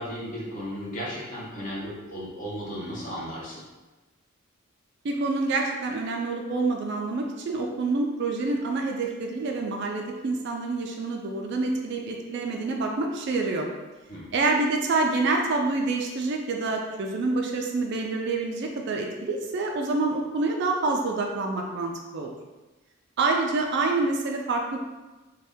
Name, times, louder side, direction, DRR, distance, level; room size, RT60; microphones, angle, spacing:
voice 1, 0.0-3.6 14.1-14.3, equal, 35° left, -6 dB, 0.7 m, -35 dB
voice 2, 5.0-13.7 14.3-22.3 23.2-24.8, right 3 dB, 50° right, 1 dB, 0.3 m, -27 dB
2.7 x 2.2 x 3.4 m, 1.2 s
head